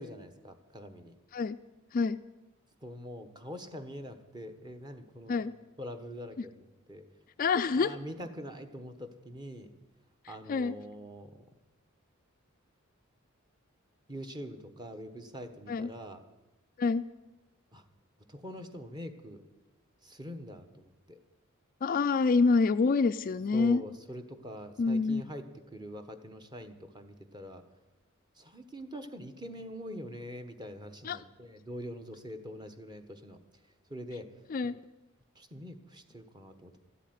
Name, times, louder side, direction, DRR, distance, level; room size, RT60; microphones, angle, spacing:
voice 1, 0.0-1.1 2.8-5.4 5.8-7.0 7.7-9.7 10.3-11.3 14.1-16.2 17.7-17.8 18.3-19.4 20.0-21.2 23.5-27.6 28.4-33.4 33.9-34.3 35.3-36.9, equal, 20° right, 7 dB, 1.1 m, -44 dB
voice 2, 7.4-7.9 10.5-10.8 15.7-15.9 16.8-17.0 21.8-23.8 24.8-25.2 31.0-31.2 34.5-34.8, left 4 dB, 40° left, 11 dB, 0.4 m, -26 dB
13.0 x 8.2 x 9.5 m, 1.1 s
head